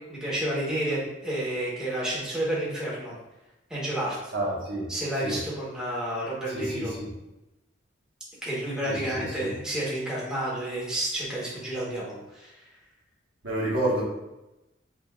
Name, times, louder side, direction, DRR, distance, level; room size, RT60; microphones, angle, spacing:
voice 1, 0.0-3.1 3.7-4.3 4.9-6.9 8.4-12.5, right 1 dB, 5° right, -7 dB, 1.2 m, -30 dB
voice 2, 4.3-4.9 5.2-5.4 6.5-7.1 8.8-9.5 13.4-14.0, right 1 dB, 85° right, -5 dB, 1.3 m, -29 dB
5.6 x 2.6 x 2.4 m, 0.97 s
head